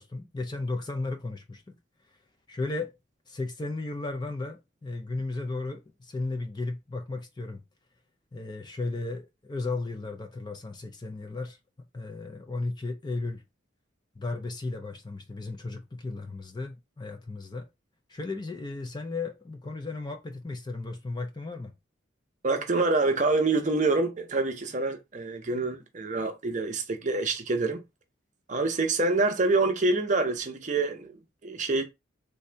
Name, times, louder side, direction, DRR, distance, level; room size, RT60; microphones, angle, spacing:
voice 1, 0.0-1.7 2.5-2.9 3.3-7.6 8.3-11.6 11.9-13.4 14.2-17.7 18.1-21.7, left 3 dB, 20° left, 0.4 m, -35 dB
voice 2, 22.4-27.8 28.5-31.8, right 3 dB, 40° right, 0.6 m, -26 dB
3.3 x 2.7 x 3.3 m
head